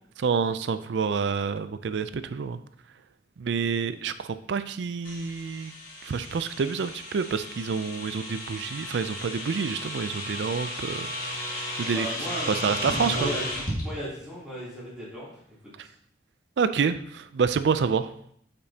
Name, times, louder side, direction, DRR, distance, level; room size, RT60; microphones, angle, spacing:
voice 1, 0.2-2.6 3.4-5.7 6.0-11.1 11.8-12.1 12.5-13.3 16.6-18.1, right 5 dB, 85° right, 12 dB, 0.4 m, -28 dB
sound 1, 5.0-13.8, left 1 dB, 50° left, 1.7 m, -34 dB
voice 2, 11.9-12.7 13.1-15.3 15.8-15.9, equal, 5° right, -10 dB, 3.0 m, -36 dB
8.8 x 5.2 x 2.8 m, 0.67 s
head